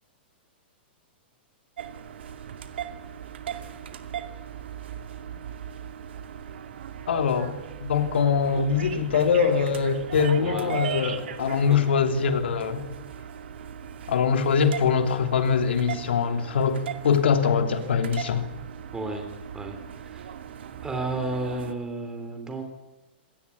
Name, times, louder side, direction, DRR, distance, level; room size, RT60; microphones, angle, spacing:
sound 1, 1.8-21.7, right 8 dB, 75° right, 2.3 m, -38 dB
voice 1, 7.1-7.5 7.8-12.9 14.1-18.5, left 6 dB, 80° left, 7 dB, 3.0 m, -23 dB
voice 2, 10.4-10.8 11.7-11.8 18.9-19.2 19.5-20.3 20.8-22.6, right 2 dB, 10° right, 5 dB, 3.3 m, -32 dB
26.0 x 18.0 x 8.5 m, 1.0 s
hypercardioid pair, 145°, 6 cm